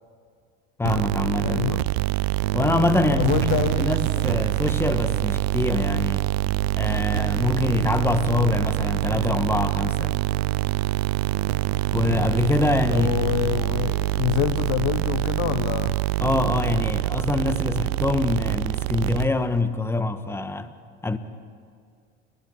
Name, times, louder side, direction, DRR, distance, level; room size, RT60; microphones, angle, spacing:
voice 1, 0.8-1.8 2.5-3.3 3.8-6.3 6.7-10.2 11.9-13.1 16.2-20.7 21.0-21.2, left 3 dB, 5° left, 1.3 m, -24 dB
sound 1, 0.8-19.6, right 16 dB, 70° right, 0.5 m, -25 dB
voice 2, 1.4-1.8 3.2-3.9 4.2-4.4 12.9-16.0, left 15 dB, 60° left, 0.9 m, -26 dB
30.0 x 11.5 x 9.4 m
hypercardioid pair, 85°, 32 cm